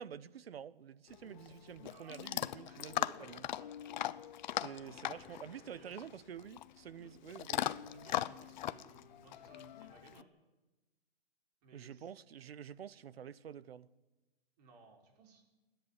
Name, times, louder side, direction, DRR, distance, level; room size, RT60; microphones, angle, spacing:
voice 1, 0.0-3.5 4.5-8.2 11.7-13.9, right 8 dB, 80° right, 1.1 m, -49 dB
Chewing mastication / Dog, 1.1-10.2, left 12 dB, 50° left, 0.7 m, -40 dB
voice 2, 1.5-2.2 2.5-4.4 5.7-6.1 7.0-7.1 7.8-10.3 11.6-12.1 14.6-15.4, right 4 dB, 40° right, 5.1 m, -61 dB
sound 1, 4.4-6.8, left 5 dB, 25° left, 3.3 m, -61 dB
28.5 x 10.5 x 10.0 m
hypercardioid pair, 155°, 30 cm